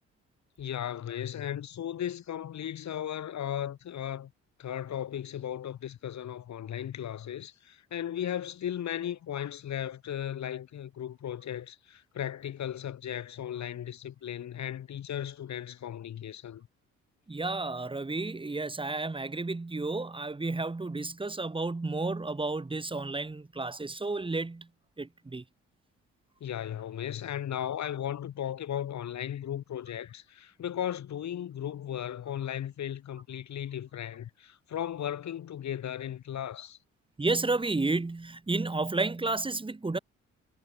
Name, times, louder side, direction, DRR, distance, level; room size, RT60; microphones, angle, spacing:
voice 1, 0.6-4.3 4.6-16.7 26.4-36.8, left 10 dB, 65° left, 6.2 m, -36 dB
voice 2, 17.3-24.7 25.0-25.4 37.2-40.0, right 3 dB, 15° right, 2.2 m, -31 dB
cardioid pair, 90°, 30 cm